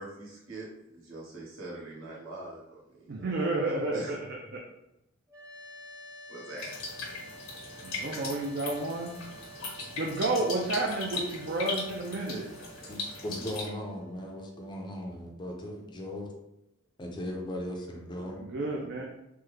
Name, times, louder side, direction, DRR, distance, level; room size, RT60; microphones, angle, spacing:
voice 1, 0.0-4.1 6.3-6.9 8.0-8.4, right 2 dB, 80° right, -4 dB, 1.0 m, -44 dB
voice 2, 3.1-4.6 7.8-9.1 9.9-12.4 18.4-19.0, right 2 dB, 55° right, -1 dB, 0.4 m, -31 dB
sound 1, 5.3-16.4, right 2 dB, 15° right, 0.7 m, -51 dB
sound 2, 6.6-13.7, left 3 dB, 85° left, 1.0 m, -39 dB
voice 3, 12.9-16.3 17.0-18.4, left 1 dB, 25° left, 1 dB, 0.5 m, -38 dB
3.5 x 2.1 x 3.1 m, 0.86 s
head